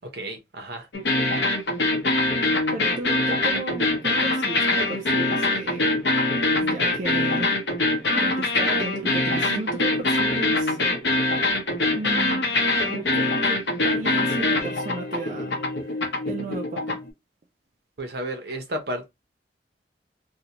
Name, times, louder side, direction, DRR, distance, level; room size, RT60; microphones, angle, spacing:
voice 1, 0.0-0.9 18.0-19.1, right 1 dB, 65° right, 0.7 m, -32 dB
sound 1, 0.9-17.1, left 2 dB, 80° left, 0.7 m, -23 dB
voice 2, 2.7-5.9 6.5-7.5 8.2-10.8 11.9-12.6 12.9-16.0 16.3-17.0, right 3 dB, 45° right, 0.3 m, -34 dB
2.6 x 2.1 x 2.8 m
head